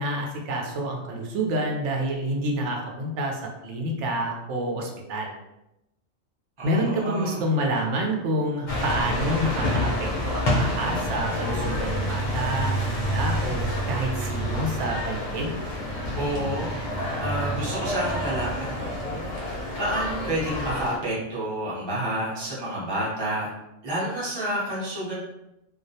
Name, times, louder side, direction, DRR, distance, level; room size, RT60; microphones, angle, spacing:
voice 1, 0.0-5.4 6.6-15.5, right 1 dB, 75° right, 1 dB, 0.9 m, -28 dB
voice 2, 6.6-7.4 16.2-23.5 23.8-25.1, right 1 dB, 25° right, -8 dB, 0.7 m, -30 dB
sound 1, 8.7-21.0, equal, 50° left, 0.6 m, -28 dB
2.3 x 2.0 x 2.7 m, 0.89 s
omnidirectional pair, 1.3 m